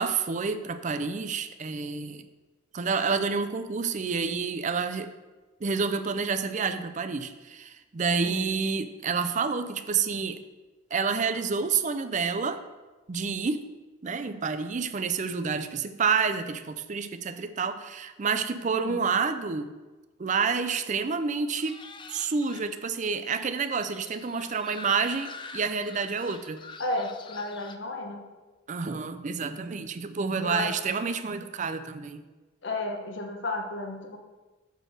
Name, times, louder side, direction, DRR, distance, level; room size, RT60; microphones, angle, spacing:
voice 1, 0.0-2.3 2.7-5.1 5.6-10.4 10.9-12.6 13.1-13.7 14.0-19.7 20.2-21.8 22.1-26.6 28.7-32.2, right 5 dB, 35° right, 10 dB, 0.5 m, -29 dB
sound 1, 21.5-27.8, left 4 dB, 25° left, 0.4 m, -46 dB
voice 2, 26.8-28.2 30.4-30.8 32.6-34.2, left 2 dB, 60° left, 3 dB, 0.9 m, -33 dB
8.0 x 4.4 x 6.4 m, 1.2 s
head